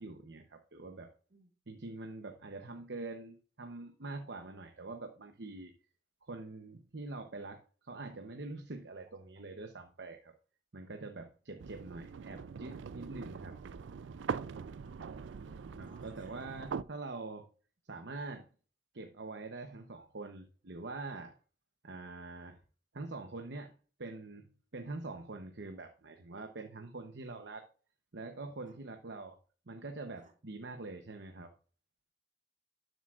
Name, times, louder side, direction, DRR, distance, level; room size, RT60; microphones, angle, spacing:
voice 1, 0.0-1.1 1.7-5.7 6.2-10.3 10.7-13.6 15.8-17.5 17.9-18.5 18.9-21.4 21.8-22.6 22.9-24.5 24.7-27.7 28.1-29.4 29.7-31.5, right 3 dB, 65° right, 0.9 m, -44 dB
sound 1, 11.6-16.8, right 6 dB, 90° right, 0.4 m, -42 dB
voice 2, 15.3-16.7 28.7-28.8 30.2-30.3, right 1 dB, 45° right, 2.2 m, -62 dB
12.5 x 7.9 x 2.5 m
head